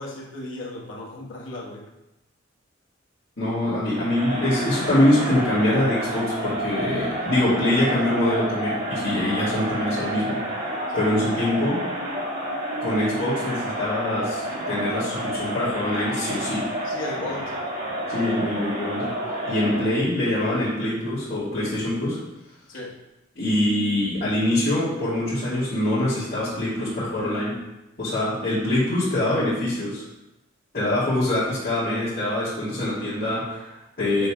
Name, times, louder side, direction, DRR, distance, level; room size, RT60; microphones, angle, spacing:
voice 1, 0.0-1.9 10.9-11.1 16.8-17.6 18.0-18.3 22.7-23.0, left 2 dB, 75° left, -2 dB, 1.4 m, -35 dB
voice 2, 3.4-10.4 10.9-11.8 12.8-16.7 18.1-19.1 19.5-22.2 23.3-27.6 28.0-30.0 30.7-34.3, left 1 dB, 50° left, -14 dB, 2.6 m, -24 dB
Crowd, 3.9-20.1, right 1 dB, 45° right, 2.7 m, -30 dB
6.8 x 4.2 x 5.0 m, 0.96 s
head